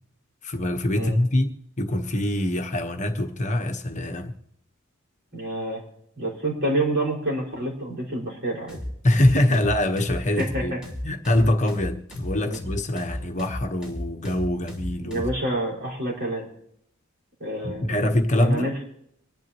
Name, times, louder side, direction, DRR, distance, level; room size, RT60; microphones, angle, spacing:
voice 1, 0.4-4.3 9.0-10.7 11.0-15.2 17.6-18.7, left 1 dB, 35° left, 1.2 m, -24 dB
voice 2, 5.3-5.8 6.2-8.8 10.4-10.8 12.4-12.6 15.0-16.4 17.4-18.0 18.4-18.8, right 1 dB, 55° right, 5.4 m, -28 dB
sound 1, 8.7-15.4, left 1 dB, 5° right, 2.9 m, -34 dB
26.0 x 11.0 x 3.1 m
head